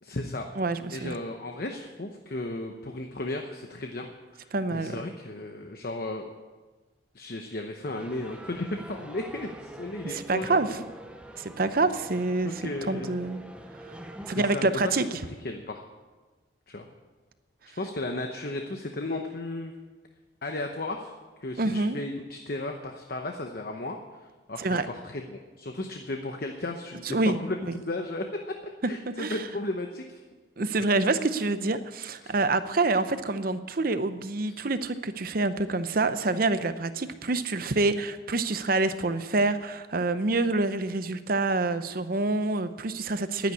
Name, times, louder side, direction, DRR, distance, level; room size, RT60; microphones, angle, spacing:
voice 1, 0.0-0.5 0.9-6.3 7.1-10.8 12.4-13.1 14.4-14.9 15.4-15.8 16.7-16.9 17.7-19.7 20.4-24.0 24.5-28.5 28.8-30.2 32.2-32.3, left 2 dB, 50° left, 4 dB, 0.9 m, -35 dB
voice 2, 0.6-1.1 4.5-5.0 10.0-10.8 11.4-13.4 14.3-15.1 21.6-22.0 24.6-24.9 27.0-27.4 29.2-29.4 30.6-43.5, right 3 dB, 50° right, 12 dB, 0.7 m, -27 dB
sound 1, 7.9-14.6, right 1 dB, 5° right, 0.8 m, -44 dB
11.0 x 10.5 x 8.5 m, 1.3 s
head